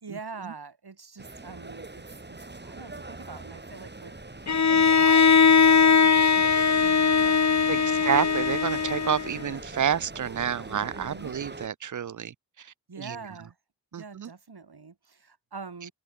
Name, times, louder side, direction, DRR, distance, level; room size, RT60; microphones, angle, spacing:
voice 1, 0.0-8.3 10.7-11.3 12.9-13.6 13.9-15.9, right 4 dB, 85° right, 2.7 m, -44 dB
sound 1, 1.2-11.7, right 2 dB, 25° right, 1.5 m, -43 dB
Bowed string instrument, 4.5-9.5, left 5 dB, 45° left, 0.8 m, -20 dB
sound 2, 4.7-9.6, left 4 dB, 90° left, 5.4 m, -49 dB
voice 2, 7.7-12.7 13.0-13.2 13.9-14.3, right 8 dB, 55° right, 0.4 m, -29 dB
wide cardioid pair, 50°, 38 cm